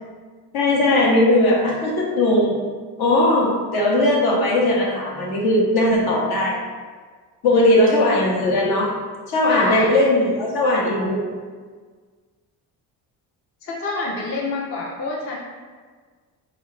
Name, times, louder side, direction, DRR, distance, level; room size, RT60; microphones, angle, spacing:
voice 1, 0.5-2.5 3.0-6.6 7.4-8.9 9.3-11.2, left 1 dB, 60° left, -3 dB, 1.0 m, -18 dB
voice 2, 9.5-9.9 13.6-15.4, left 3 dB, 30° left, -3 dB, 0.6 m, -26 dB
4.0 x 2.4 x 3.1 m, 1.5 s
cardioid pair, 85°, 43 cm